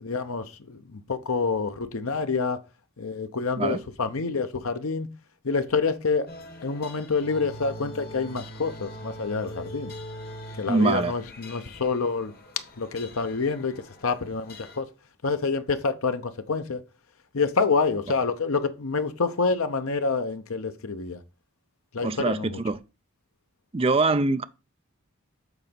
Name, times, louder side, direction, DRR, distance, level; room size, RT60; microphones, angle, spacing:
voice 1, 0.0-2.6 3.0-5.1 5.4-6.3 6.6-9.9 10.6-12.3 12.8-14.9 15.2-16.8 17.3-21.2 21.9-22.6, left 4 dB, 75° left, 0.8 m, -27 dB
sound 1, 6.3-14.8, left 1 dB, 45° left, 1.4 m, -42 dB
voice 2, 10.7-11.1 22.0-22.8 23.7-24.4, right 3 dB, 25° right, 0.4 m, -23 dB
8.2 x 4.0 x 5.2 m
head